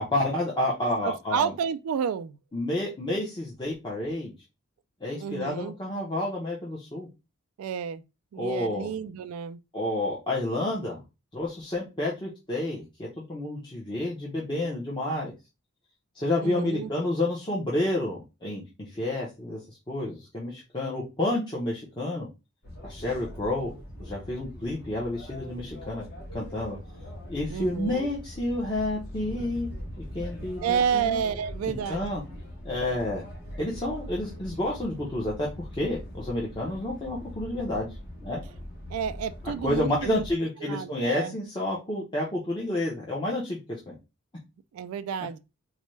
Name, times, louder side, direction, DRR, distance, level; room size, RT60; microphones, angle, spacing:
voice 1, 0.1-1.5 2.5-4.3 5.0-7.1 8.4-8.9 9.7-11.0 11.3-15.3 16.1-22.3 22.8-23.7 24.0-26.0 26.3-26.8 27.3-29.7 30.0-31.2 31.6-32.2 32.6-33.2 33.6-37.9 38.2-38.4 39.6-43.6 43.9-44.0, left 1 dB, 20° left, 0.8 m, -30 dB
voice 2, 1.0-2.4 5.2-5.7 7.6-8.0 8.3-9.6 16.4-16.9 27.5-28.1 30.6-32.0 38.9-40.2 40.6-41.3 44.7-45.4, right 7 dB, 80° right, 0.3 m, -30 dB
sound 1, 22.6-40.3, equal, 50° left, 1.3 m, -41 dB
4.0 x 2.2 x 3.1 m
head